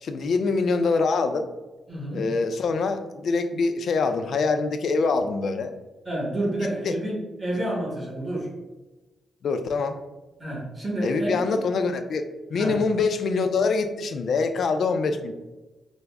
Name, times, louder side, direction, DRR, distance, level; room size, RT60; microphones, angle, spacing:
voice 1, 0.0-1.5 2.1-5.7 6.9-7.0 9.4-10.0 11.0-15.3, left 4 dB, 60° left, 8 dB, 0.3 m, -24 dB
voice 2, 1.9-2.2 6.0-7.1 7.4-8.5 10.4-11.5 12.5-12.7, right 1 dB, 20° right, -3 dB, 1.0 m, -29 dB
3.5 x 2.0 x 3.3 m, 1.1 s
wide cardioid pair, 155°, 0 cm